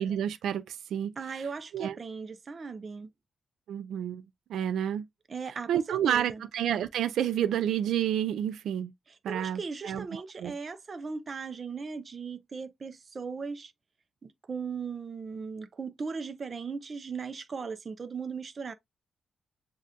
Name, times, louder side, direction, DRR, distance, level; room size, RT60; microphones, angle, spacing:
voice 1, 0.0-1.4 1.7-2.0 3.7-4.2 4.5-5.1 5.7-8.9 9.2-10.0 10.4-10.5, right 10 dB, 90° right, 0.4 m, -29 dB
voice 2, 1.2-3.1 5.3-6.4 9.1-13.7 14.2-18.7, right 5 dB, 40° right, 0.6 m, -38 dB
7.3 x 2.4 x 2.8 m
cardioid pair, 95°, 0 cm